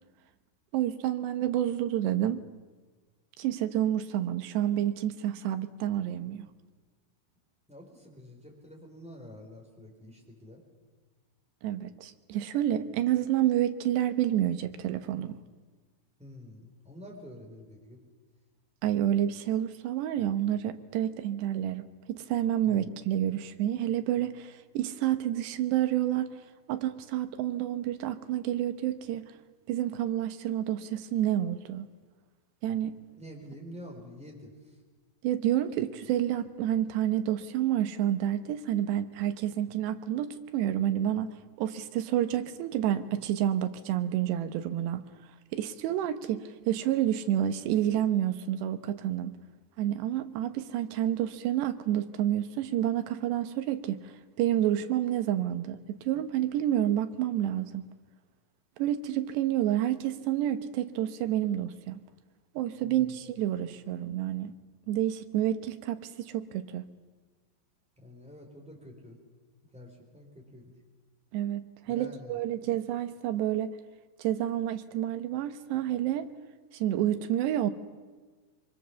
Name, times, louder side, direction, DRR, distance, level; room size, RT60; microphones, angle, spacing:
voice 1, 0.7-2.4 3.4-6.5 11.6-15.4 18.8-26.3 26.7-29.3 29.7-31.9 32.6-33.0 35.2-45.0 45.5-49.3 49.8-54.0 54.4-57.8 58.8-62.0 62.6-64.5 64.9-66.8 71.3-73.7 74.2-76.3 76.7-77.7, right 11 dB, 80° right, 3.1 m, -29 dB
voice 2, 7.7-10.6 16.2-18.0 22.6-22.9 33.2-34.7 62.8-63.2 68.0-69.2 69.7-70.7 71.9-72.4, left 1 dB, ahead, 3.7 m, -48 dB
24.0 x 23.5 x 7.1 m
omnidirectional pair, 5.0 m